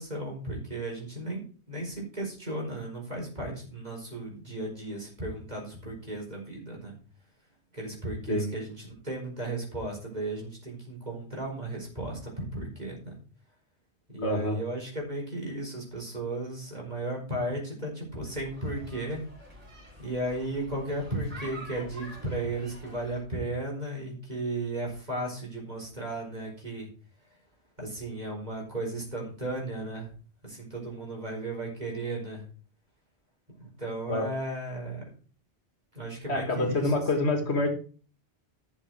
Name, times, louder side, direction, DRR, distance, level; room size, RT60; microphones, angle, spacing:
voice 1, 0.0-6.9 7.7-13.2 14.1-19.2 20.0-26.9 27.8-30.1 30.4-32.5 33.6-35.0 35.9-37.0, right 1 dB, 40° right, -1 dB, 4.8 m, -35 dB
voice 2, 14.2-14.6 34.1-34.3 36.3-37.7, left 2 dB, 70° left, 4 dB, 2.3 m, -26 dB
sound 1, 18.2-23.2, right 1 dB, 10° right, 5.8 m, -47 dB
12.0 x 7.2 x 4.8 m, 0.40 s
omnidirectional pair, 1.1 m